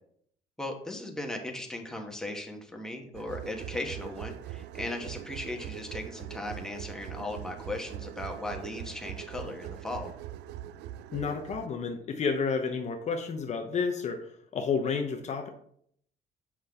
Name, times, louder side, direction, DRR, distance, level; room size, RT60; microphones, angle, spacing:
voice 1, 0.6-10.1, left 2 dB, 5° left, 1 dB, 1.3 m, -37 dB
sound 1, 3.1-11.7, right 13 dB, 80° right, 0.4 m, -42 dB
voice 2, 11.1-15.5, left 5 dB, 45° left, 3 dB, 0.8 m, -31 dB
7.4 x 5.6 x 3.6 m, 0.67 s
cardioid pair, 110°, 17 cm